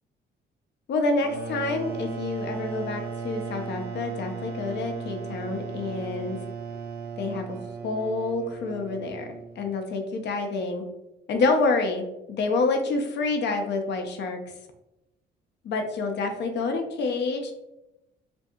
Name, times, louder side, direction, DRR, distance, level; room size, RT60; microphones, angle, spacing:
voice 1, 0.9-6.4 7.2-7.6 7.8-10.8 11.3-14.4 15.6-17.5, left 3 dB, 60° left, 4 dB, 0.5 m, -28 dB
sound 1, 1.2-9.7, right 5 dB, 55° right, 0.4 m, -36 dB
2.6 x 2.6 x 2.3 m, 0.92 s
cardioid pair, 90°, 20 cm